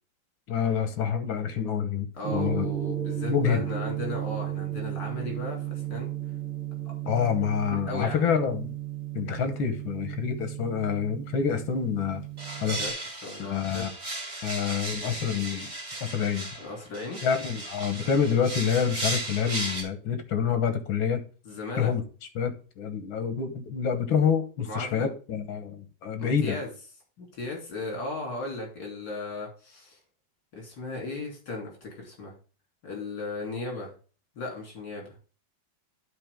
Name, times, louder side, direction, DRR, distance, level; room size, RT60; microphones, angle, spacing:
voice 1, 0.5-2.7 3.3-3.6 7.1-8.7 9.2-12.2 12.6-12.8 13.4-13.9 14.4-15.7 16.0-16.5 17.2-21.3 21.8-22.0 22.4-26.6, left 7 dB, 90° left, 1.9 m, -27 dB
voice 2, 2.1-6.1 7.2-7.3 7.7-8.3 12.8-12.9 13.2-13.9 16.6-17.2 21.5-21.9 24.7-25.1 26.2-26.7 27.2-30.0 30.5-32.3 32.8-33.9 34.4-35.1, left 2 dB, 60° left, 3.7 m, -36 dB
Gong, 2.2-12.9, right 11 dB, 75° right, 2.0 m, -34 dB
sound 1, 12.4-19.8, right 2 dB, 35° right, 2.7 m, -36 dB
11.5 x 4.6 x 3.6 m
omnidirectional pair, 2.1 m